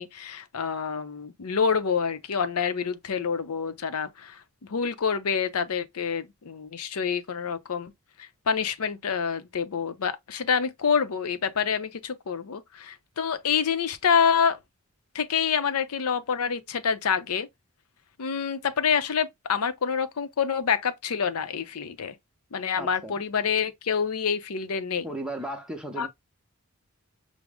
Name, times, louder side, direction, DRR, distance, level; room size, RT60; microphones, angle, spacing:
voice 1, 0.0-4.4 4.7-7.9 8.2-14.6 15.1-17.5 18.2-22.1 22.5-25.1 26.0-26.1, left 6 dB, 80° left, 0.6 m, -27 dB
voice 2, 22.7-23.2 25.0-26.1, right 1 dB, 5° right, 0.7 m, -35 dB
6.1 x 2.0 x 3.4 m
head